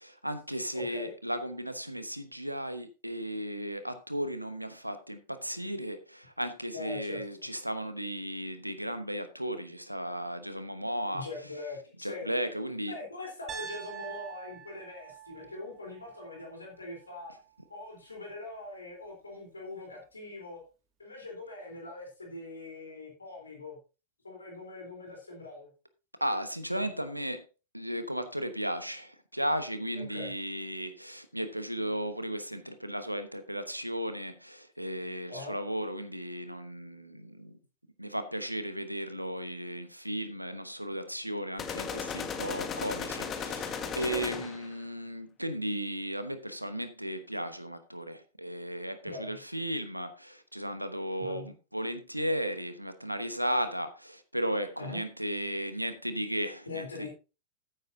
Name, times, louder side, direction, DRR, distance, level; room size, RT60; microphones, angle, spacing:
voice 1, 0.0-11.3 12.0-12.9 26.2-27.4 27.7-37.5 38.0-57.1, equal, 90° right, 1.1 m, -35 dB
voice 2, 0.7-1.1 6.7-7.2 11.1-12.3 12.9-17.3 17.7-20.6 21.0-23.8 24.2-25.7 29.9-30.3 35.3-35.5 44.0-44.2 49.0-49.4 51.2-51.5 54.8-55.0 56.7-57.1, left 2 dB, 80° left, 3.9 m, -42 dB
Piano, 13.5-17.5, right 8 dB, 30° right, 1.9 m, -46 dB
sound 1, 41.6-44.7, left 6 dB, 30° left, 1.6 m, -36 dB
14.0 x 9.3 x 2.8 m
figure-of-eight pair, 90°, 0 cm